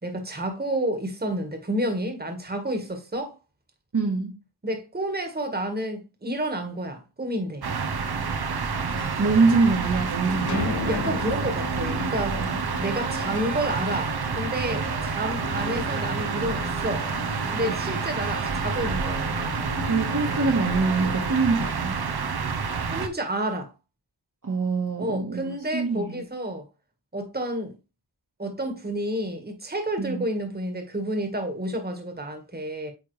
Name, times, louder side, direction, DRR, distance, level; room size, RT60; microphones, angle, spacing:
voice 1, 0.0-3.4 4.6-7.7 10.8-12.4 12.8-17.1 17.5-19.3 22.9-23.7 25.0-26.6 27.1-27.7 28.4-32.9, right 1 dB, 20° right, 1.6 m, -30 dB
voice 2, 3.9-4.3 9.2-10.8 12.3-12.6 17.7-18.0 19.9-22.0 24.4-26.2 30.0-30.3, right 4 dB, 45° right, 1.5 m, -24 dB
sound 1, 7.6-23.1, right 5 dB, 60° right, 0.9 m, -29 dB
sound 2, 8.9-21.5, left 1 dB, 80° right, 3.5 m, -37 dB
sound 3, 10.5-13.0, left 6 dB, 45° left, 0.6 m, -35 dB
9.2 x 3.5 x 3.2 m
wide cardioid pair, 60°, 42 cm